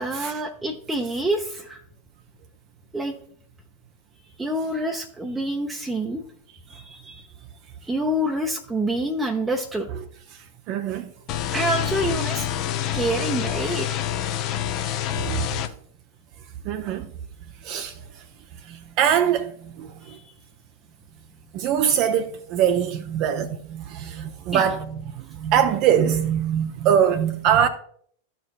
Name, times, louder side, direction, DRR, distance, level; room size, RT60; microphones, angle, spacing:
voice 1, 0.0-1.8 2.9-3.1 4.4-6.2 6.7-7.2 7.8-9.9 11.5-12.5 12.9-14.0 20.0-20.3 24.5-24.7, right 1 dB, 10° right, 0.7 m, -27 dB
voice 2, 10.7-11.1 15.1-15.5 16.7-17.1 17.6-17.9 18.7-19.9 21.5-27.7, right 9 dB, 40° right, 0.5 m, -23 dB
sound 1, 11.3-15.7, left 11 dB, 40° left, 0.6 m, -27 dB
13.5 x 4.5 x 2.4 m
figure-of-eight pair, 90°, 0 cm